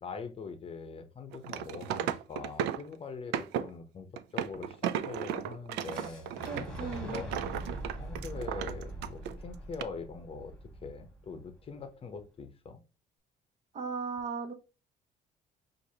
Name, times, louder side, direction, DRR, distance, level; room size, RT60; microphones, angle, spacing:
voice 1, 0.0-6.3 7.0-7.5 7.9-12.8, left 5 dB, 35° left, 0.8 m, -43 dB
sound 1, 1.3-2.9 3.3-3.7 4.2-9.4 9.7-9.8, right 10 dB, 85° right, 0.4 m, -35 dB
Boom, 5.9-11.8, right 1 dB, 5° left, 1.6 m, -43 dB
voice 2, 6.5-7.2 13.7-14.5, right 5 dB, 40° right, 1.0 m, -37 dB
6.1 x 2.6 x 2.8 m
cardioid pair, 110°, 17 cm